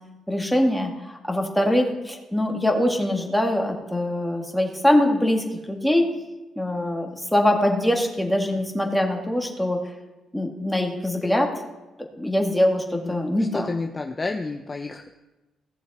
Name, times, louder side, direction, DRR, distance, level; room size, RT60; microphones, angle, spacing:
voice 1, 0.3-0.9 1.2-6.1 6.6-9.8 10.3-11.5 12.2-13.7, left 1 dB, 5° left, 1 dB, 2.1 m, -23 dB
voice 2, 13.5-15.1, left 3 dB, 25° left, 4 dB, 0.7 m, -30 dB
17.0 x 7.2 x 4.3 m, 1.1 s
cardioid pair, 90°, 0 cm